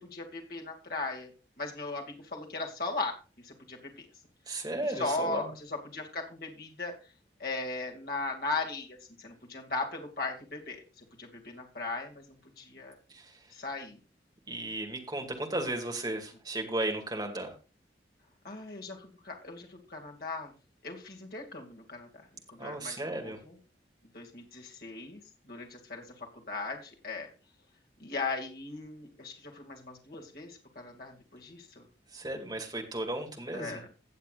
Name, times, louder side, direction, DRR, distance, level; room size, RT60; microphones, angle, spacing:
voice 1, 0.0-1.3 1.6-4.1 4.8-6.9 7.4-12.2 12.6-13.0 13.5-14.0 18.4-20.5 20.8-22.1 22.5-23.6 24.1-25.2 25.5-27.3 28.0-31.8 33.5-33.9, left 3 dB, 55° left, 0 dB, 2.4 m, -38 dB
voice 2, 4.5-5.5 13.1-13.4 14.5-17.5 22.6-23.4 32.1-33.8, right 1 dB, 20° right, 2 dB, 2.3 m, -35 dB
17.5 x 7.4 x 2.5 m, 0.33 s
head